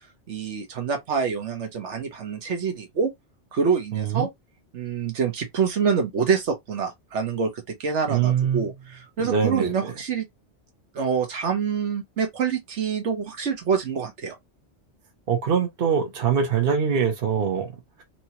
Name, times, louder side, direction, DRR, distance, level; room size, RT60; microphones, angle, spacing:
voice 1, 0.3-3.1 3.5-4.3 4.7-10.3 10.9-14.4, right 6 dB, 85° right, 1.3 m, -26 dB
voice 2, 3.9-4.3 8.1-8.7 9.2-9.9 15.3-18.0, right 7 dB, 55° right, 1.1 m, -24 dB
3.2 x 2.9 x 2.8 m
omnidirectional pair, 1.2 m